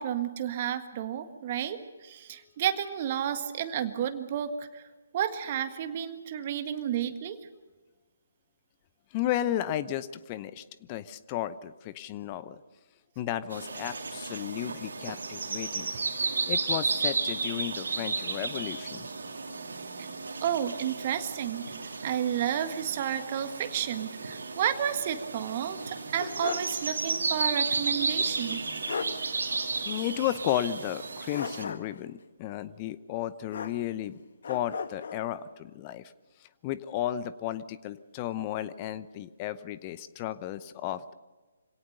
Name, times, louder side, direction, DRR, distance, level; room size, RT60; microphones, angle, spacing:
voice 1, 0.0-4.8 5.1-7.4 20.0-20.1 20.4-21.7 22.0-28.6, right 10 dB, 35° right, 9 dB, 1.6 m, -31 dB
voice 2, 9.1-12.6 13.2-15.9 16.5-19.1 29.8-34.2 34.5-36.1 36.6-41.1, left 12 dB, 25° left, 14 dB, 0.8 m, -33 dB
sound 1, 13.5-31.6, right 4 dB, 70° right, 2.6 m, -33 dB
sound 2, 25.8-26.8 27.1-27.2 28.5-28.6 28.9-29.2 31.3-32.0 33.5-34.1 34.4-35.2, left 6 dB, 55° left, 1.3 m, -36 dB
26.0 x 17.5 x 6.7 m, 1.3 s
figure-of-eight pair, 140°, 0 cm